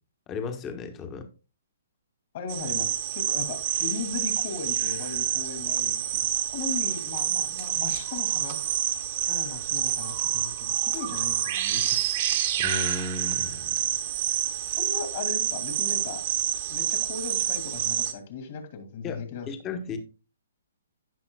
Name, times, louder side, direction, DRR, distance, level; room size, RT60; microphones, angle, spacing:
voice 1, 0.3-1.2 12.6-13.7 14.6-14.8 19.0-20.0, left 4 dB, 20° left, 7 dB, 1.3 m, -35 dB
voice 2, 2.3-8.6 9.3-12.0 14.8-16.2 16.7-19.5, left 5 dB, 50° left, 6 dB, 2.6 m, -37 dB
sound 1, 2.5-18.1, right 11 dB, 45° right, 1.2 m, -28 dB
15.5 x 5.6 x 2.3 m, 0.32 s
hypercardioid pair, 150°, 0 cm